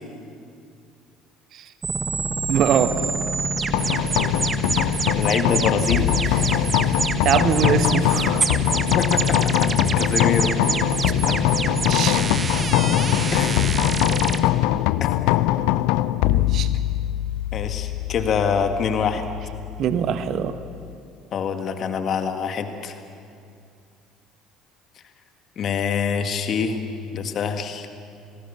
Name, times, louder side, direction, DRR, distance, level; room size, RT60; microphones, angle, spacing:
sound 1, 1.8-14.4, right 3 dB, 30° right, 1.6 m, -25 dB
voice 1, 2.5-2.9 6.2-8.5 11.6-12.3 14.7-14.8 16.2-16.7 19.8-20.6, right 9 dB, 50° right, 11 dB, 1.4 m, -24 dB
sound 2, 3.7-20.9, left 15 dB, 60° left, 0.6 m, -23 dB
voice 2, 5.1-6.1 9.0-9.7 10.0-10.5 11.3-11.4 13.3-13.8 14.4-14.5 15.0-15.1 17.5-19.2 21.3-23.0 25.6-26.8 27.1-27.9, left 6 dB, 45° left, 7 dB, 2.1 m, -25 dB
28.5 x 19.5 x 7.3 m, 2.4 s
figure-of-eight pair, 55°, 0 cm